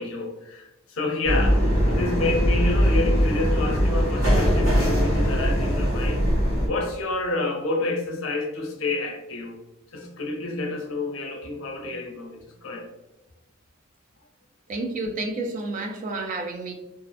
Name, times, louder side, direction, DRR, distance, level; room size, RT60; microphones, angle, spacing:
voice 1, 0.0-6.3 6.6-9.6 9.9-12.9, left 2 dB, 75° left, 0.5 m, -29 dB
sound 1, 1.2-6.7, equal, 80° right, 1.3 m, -21 dB
voice 2, 14.7-16.7, right 2 dB, 40° right, 0.3 m, -30 dB
2.4 x 2.0 x 2.6 m
head